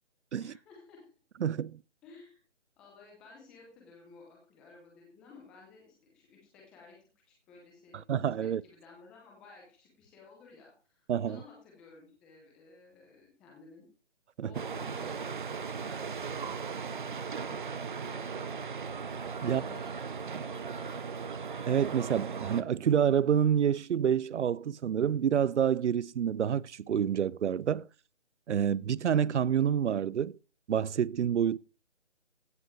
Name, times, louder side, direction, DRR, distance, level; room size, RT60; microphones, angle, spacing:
voice 1, 0.3-1.1 2.0-2.4 2.8-8.0 8.4-13.8 14.4-18.9 19.4-21.2, left 4 dB, ahead, 0.7 m, -55 dB
voice 2, 1.4-1.8 8.1-8.6 11.1-11.4 14.4-14.5 19.4-19.6 21.7-27.9 28.5-30.4 30.7-31.6, right 8 dB, 75° right, 0.5 m, -28 dB
sound 1, 14.5-22.6, right 5 dB, 45° right, 0.7 m, -37 dB
15.5 x 5.4 x 4.6 m
figure-of-eight pair, 160°, 35 cm